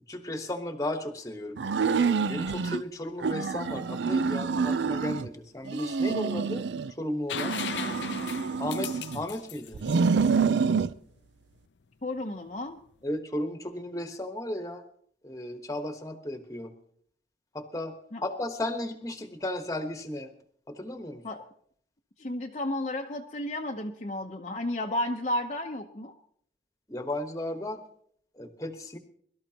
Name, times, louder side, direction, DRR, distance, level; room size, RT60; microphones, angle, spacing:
voice 1, 0.1-6.6 7.0-7.5 8.6-9.8 13.0-14.8 15.2-16.7 17.5-18.0 18.2-20.3 20.7-21.2 26.9-27.8 28.4-29.0, left 1 dB, 20° left, 6 dB, 1.2 m, -34 dB
sound 1, 1.6-2.8 3.2-5.3 5.7-6.9 7.3-9.3 9.7-10.9, right 5 dB, 85° right, 0.5 m, -27 dB
sound 2, 7.3-11.0 12.9-13.0, left 8 dB, 90° left, 0.6 m, -38 dB
voice 2, 12.0-12.8 18.1-18.2 21.2-21.4 22.2-26.2, left 1 dB, 40° left, 1 dB, 0.8 m, -32 dB
23.0 x 13.0 x 2.9 m, 0.63 s
head